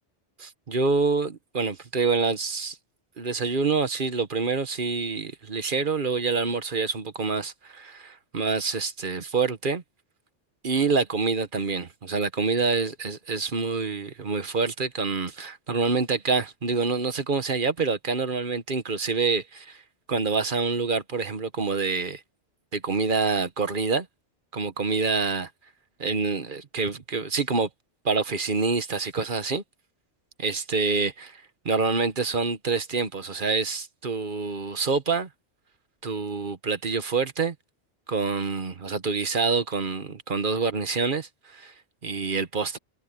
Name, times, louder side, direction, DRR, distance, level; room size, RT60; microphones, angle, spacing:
voice 1, 0.4-2.8 3.2-9.8 10.6-19.8 20.1-22.2 22.7-24.1 24.5-25.5 26.0-27.7 28.0-29.6 30.4-31.4 31.6-35.3 36.0-37.5 38.1-41.7 42.0-42.8, right 4 dB, 45° right, 1.3 m, -26 dB
omnidirectional pair, 1.2 m